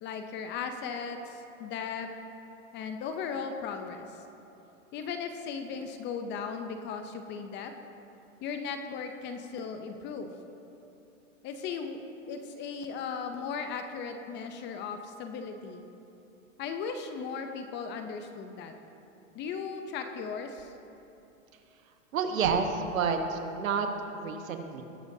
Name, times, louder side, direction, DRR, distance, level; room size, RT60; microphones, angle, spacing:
voice 1, 0.0-2.1 2.7-4.1 4.9-7.7 8.4-10.3 11.4-12.0 12.3-15.8 16.6-18.7 19.3-20.7, left 5 dB, 25° left, 6 dB, 0.6 m, -37 dB
voice 2, 22.1-23.9 24.1-24.8, right 5 dB, 80° right, 6 dB, 1.2 m, -29 dB
20.0 x 6.9 x 2.7 m, 2.9 s
hypercardioid pair, 125°, 40 cm